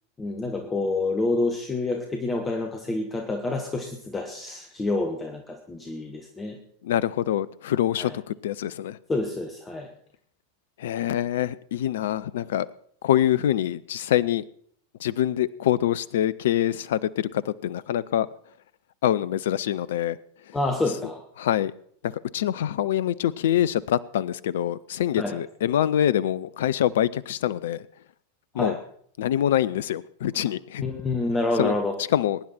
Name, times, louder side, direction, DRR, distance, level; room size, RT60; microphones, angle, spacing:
voice 1, 0.2-6.6 8.0-8.2 9.1-9.9 20.5-21.2 25.2-25.4 28.5-28.8 30.8-32.0, left 2 dB, 15° left, 1.5 m, -28 dB
voice 2, 6.8-9.0 10.8-12.7 13.0-14.4 15.0-18.3 19.0-20.2 21.4-21.7 22.0-27.8 28.5-28.8 29.2-30.8 31.6-31.8 32.1-32.4, left 11 dB, 60° left, 0.5 m, -25 dB
21.5 x 10.0 x 4.4 m
figure-of-eight pair, 90°, 0 cm